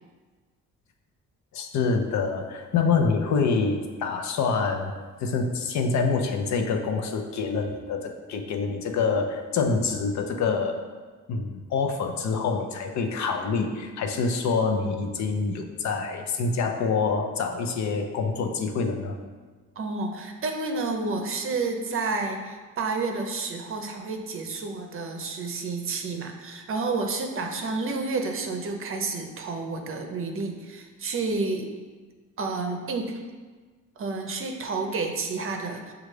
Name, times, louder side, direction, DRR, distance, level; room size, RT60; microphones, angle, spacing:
voice 1, 1.5-4.9 5.2-10.8 11.3-19.1, left 4 dB, 65° left, 4 dB, 0.6 m, -26 dB
voice 2, 19.8-31.7 32.4-33.1 34.0-35.9, right 3 dB, 45° right, 4 dB, 0.6 m, -30 dB
6.3 x 2.4 x 3.2 m, 1.4 s
cardioid pair, 90°, 30 cm